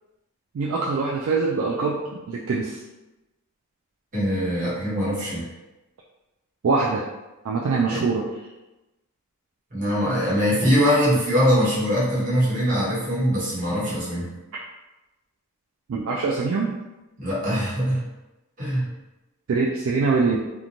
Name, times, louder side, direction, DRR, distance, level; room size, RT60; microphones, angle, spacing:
voice 1, 0.5-2.8 6.6-7.0 7.4-8.3 15.9-16.7 19.5-20.4, right 4 dB, 65° right, -3 dB, 0.3 m, -23 dB
voice 2, 4.1-5.5 7.9-8.0 9.7-14.3 17.2-18.0 18.6-18.9, equal, 35° right, -7 dB, 1.0 m, -22 dB
3.0 x 2.1 x 2.5 m, 1.0 s
head